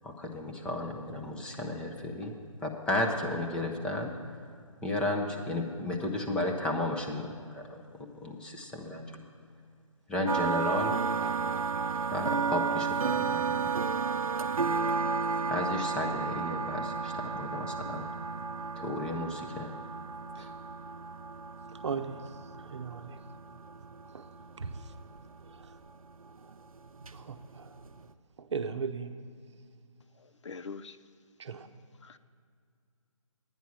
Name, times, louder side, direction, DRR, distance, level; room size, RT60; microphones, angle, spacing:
voice 1, 0.0-2.3 2.6-4.1 4.8-7.8 8.2-9.0 10.1-10.9 12.1-13.6 15.5-18.0 18.8-19.7 20.4-20.5, left 2 dB, 5° left, 1 dB, 0.5 m, -33 dB
sound 1, 10.3-28.1, right 5 dB, 85° right, 0.6 m, -33 dB
voice 2, 21.7-23.2 24.1-24.3 24.6-24.9 25.4-25.8 26.4-26.5 27.1-27.8 28.4-29.2 31.4-31.7, right 5 dB, 55° right, 8 dB, 0.8 m, -38 dB
voice 3, 30.2-31.0 32.0-32.2, left 5 dB, 60° left, 12 dB, 0.5 m, -44 dB
11.5 x 9.7 x 6.1 m, 2.2 s
figure-of-eight pair, 145°, 18 cm